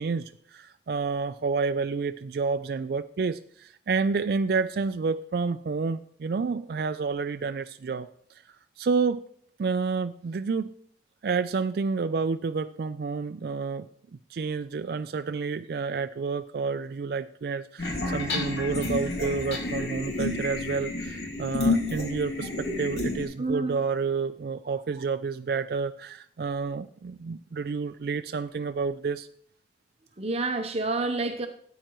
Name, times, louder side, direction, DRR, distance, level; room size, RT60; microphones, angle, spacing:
voice 1, 0.0-8.1 8.8-9.2 9.6-10.7 11.2-13.9 14.3-29.3, right 4 dB, 55° right, 9 dB, 0.4 m, -29 dB
sound 1, 17.8-23.3, left 3 dB, 70° left, 2.5 m, -30 dB
voice 2, 23.4-23.8 30.2-31.5, right 2 dB, 35° right, 5 dB, 0.7 m, -28 dB
13.0 x 9.1 x 3.0 m, 0.62 s
head